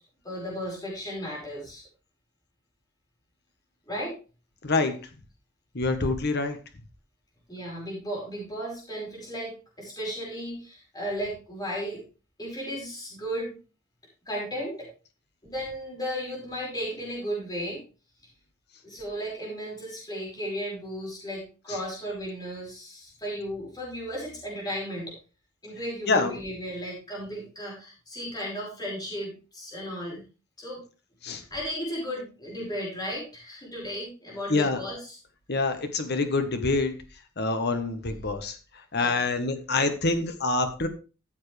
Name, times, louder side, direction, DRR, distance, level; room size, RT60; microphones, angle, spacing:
voice 1, 0.2-1.8 3.9-4.1 7.5-12.0 12.4-13.6 14.3-14.9 15.4-17.8 18.8-25.1 25.6-30.2 30.6-30.8 31.3-35.2 38.9-39.3, equal, 20° left, -4 dB, 5.1 m, -35 dB
voice 2, 4.6-5.0 5.7-6.6 21.7-21.8 26.1-26.3 31.2-31.4 34.5-34.8 35.5-37.0 37.4-38.6 38.9-40.9, left 3 dB, 50° left, 8 dB, 1.4 m, -26 dB
14.0 x 7.3 x 3.4 m, 0.33 s
head